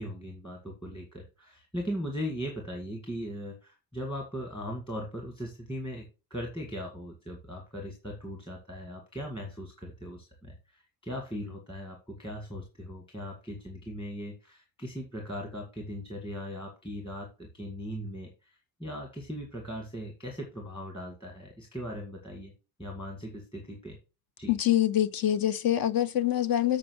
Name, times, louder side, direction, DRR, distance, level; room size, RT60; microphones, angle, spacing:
voice 1, 0.0-6.0 6.3-22.5 22.8-24.0 24.4-24.5, equal, 15° left, 1.8 m, -39 dB
voice 2, 24.5-26.8, left 12 dB, 60° left, 0.9 m, -25 dB
7.6 x 5.0 x 6.2 m
cardioid pair, 150°, 39 cm